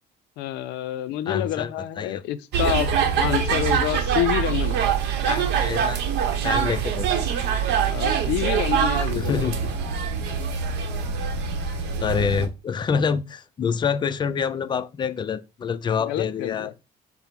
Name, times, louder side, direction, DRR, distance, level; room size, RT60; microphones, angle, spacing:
voice 1, 0.4-4.8 7.9-9.5 16.0-16.8, left 13 dB, 85° left, 0.4 m, -28 dB
voice 2, 1.3-2.2 5.2-6.0 6.4-7.1 9.1-9.7 12.0-16.7, left 6 dB, 25° left, 0.4 m, -26 dB
sound 1, 2.5-12.5, right 7 dB, 85° right, 0.8 m, -24 dB
5.1 x 2.0 x 4.4 m
cardioid pair, 110°, 17 cm